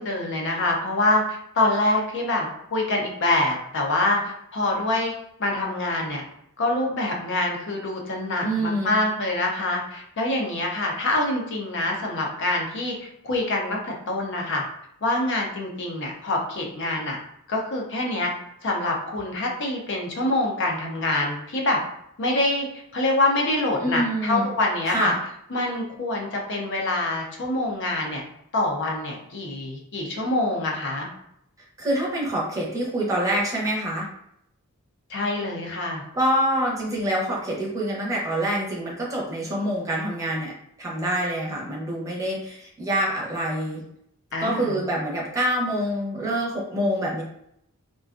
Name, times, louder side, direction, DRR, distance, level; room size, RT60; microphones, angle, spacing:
voice 1, 0.0-5.1 5.4-6.2 6.6-14.6 15.0-17.2 17.5-18.3 18.6-21.8 22.2-22.7 22.9-25.1 25.5-28.2 28.5-31.1 35.1-36.0 44.3-44.8, left 2 dB, 55° left, 0 dB, 0.5 m, -25 dB
voice 2, 8.4-8.9 23.8-24.5 24.9-25.1 31.8-34.1 36.1-40.5 40.8-43.8 44.4-47.2, right 1 dB, 15° right, -5 dB, 0.7 m, -26 dB
2.4 x 2.2 x 2.4 m, 0.75 s
head